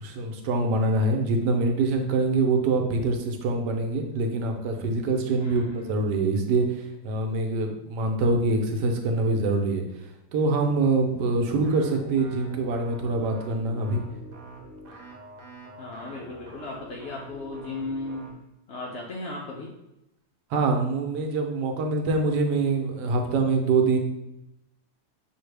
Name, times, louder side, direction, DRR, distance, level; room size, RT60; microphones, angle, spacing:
voice 1, 0.0-6.7 7.0-9.8 10.3-14.0 20.5-24.0, right 3 dB, 90° right, 3 dB, 1.3 m, -24 dB
voice 2, 5.4-6.1 15.8-18.3 18.7-19.7, left 2 dB, 75° left, -2 dB, 0.6 m, -36 dB
sound 1, 11.6-18.3, right 1 dB, 40° right, 0.9 m, -45 dB
5.7 x 2.7 x 3.3 m, 0.92 s
omnidirectional pair, 1.7 m